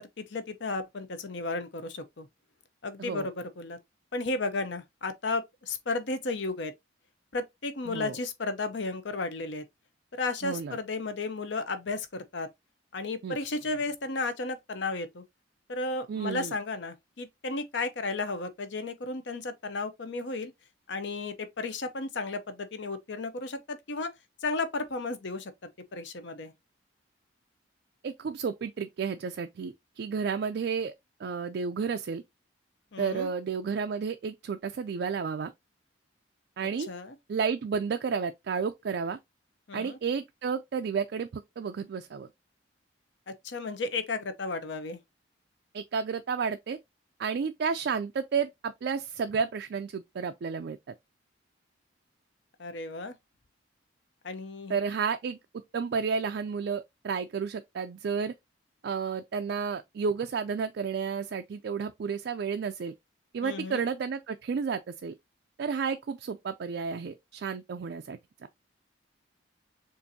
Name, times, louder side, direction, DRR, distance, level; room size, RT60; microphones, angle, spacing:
voice 1, 0.0-2.3 2.8-3.8 4.1-6.7 7.3-9.6 10.1-12.5 12.9-15.2 15.7-20.5 20.9-24.1 24.4-25.5 25.9-26.5 32.9-33.3 36.9-37.2 39.7-40.0 43.3-45.0 52.6-53.1 54.2-54.8 63.4-63.8, left 3 dB, 65° left, 0.7 m, -33 dB
voice 2, 10.4-10.8 13.2-13.4 16.1-16.5 28.0-30.9 31.2-32.2 33.0-35.5 36.6-36.9 37.3-39.2 39.7-42.3 45.7-46.8 47.2-50.8 54.7-55.4 55.7-58.3 58.8-62.9 63.3-65.1 65.6-68.2, right 6 dB, 55° right, 0.3 m, -31 dB
6.8 x 2.6 x 2.6 m
head